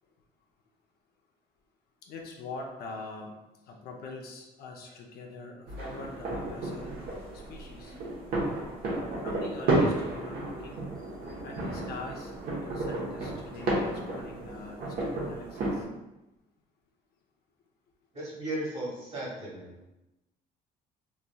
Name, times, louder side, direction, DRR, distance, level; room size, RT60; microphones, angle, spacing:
voice 1, 2.1-3.3 3.7-6.9 7.5-7.9 9.2-10.8 11.4-12.3 12.7-15.9, left 3 dB, 65° left, 0 dB, 0.5 m, -43 dB
sound 1, 5.7-15.8, right 2 dB, 65° right, 0.9 m, -32 dB
voice 2, 18.1-19.7, right 1 dB, 35° right, -5 dB, 1.4 m, -36 dB
3.1 x 2.6 x 2.2 m, 0.95 s
cardioid pair, 110°, 17 cm